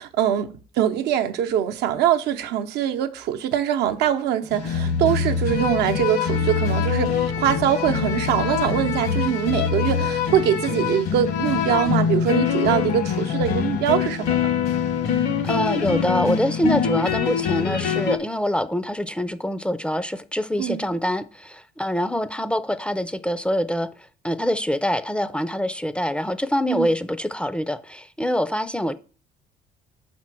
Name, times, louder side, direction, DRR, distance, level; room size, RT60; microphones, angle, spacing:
voice 1, 0.0-14.5 20.6-20.8 26.7-26.9, right 10 dB, 75° right, 0.7 m, -23 dB
sound 1, 4.5-18.2, left 7 dB, 70° left, 1.1 m, -24 dB
voice 2, 15.1-28.9, equal, 5° left, 0.4 m, -25 dB
5.7 x 4.3 x 6.0 m
cardioid pair, 110°, 17 cm